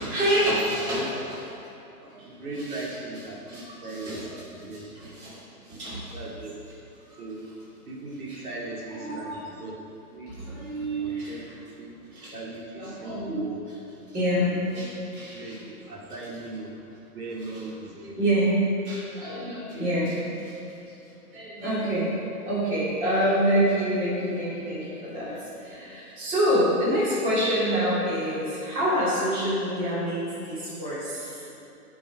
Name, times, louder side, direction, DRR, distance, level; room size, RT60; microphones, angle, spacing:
voice 1, 0.0-1.4 2.0-2.3 2.7-2.8 3.4-4.3 4.7-6.2 7.1-7.2 8.3-8.4 8.9-9.5 10.3-11.4 12.1-12.3 12.7-13.5 14.1-14.9 15.1-15.6 17.9-20.2 20.4-20.7 21.3-22.1 22.4-31.5, equal, 15° right, -9 dB, 2.7 m, -27 dB
voice 2, 2.2-5.1 6.1-6.6 7.2-7.5 7.9-9.8 10.1-10.4 10.9-12.0 12.3-13.6 14.4-14.9 15.3-18.3 19.9-20.1, right 2 dB, 75° right, -3 dB, 2.4 m, -39 dB
14.0 x 6.0 x 4.8 m, 2.8 s
hypercardioid pair, 165°, 45 cm